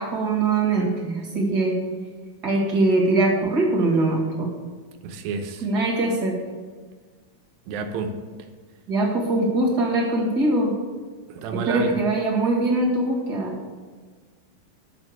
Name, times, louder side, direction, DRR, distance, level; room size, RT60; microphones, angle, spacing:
voice 1, 0.0-1.8 2.4-4.5 5.6-6.4 8.9-10.7 11.5-13.5, right 2 dB, 35° right, -2 dB, 2.0 m, -22 dB
voice 2, 5.0-5.7 7.7-8.1 11.3-11.9, right 4 dB, 90° right, 5 dB, 2.7 m, -29 dB
9.7 x 6.3 x 6.7 m, 1.4 s
omnidirectional pair, 4.0 m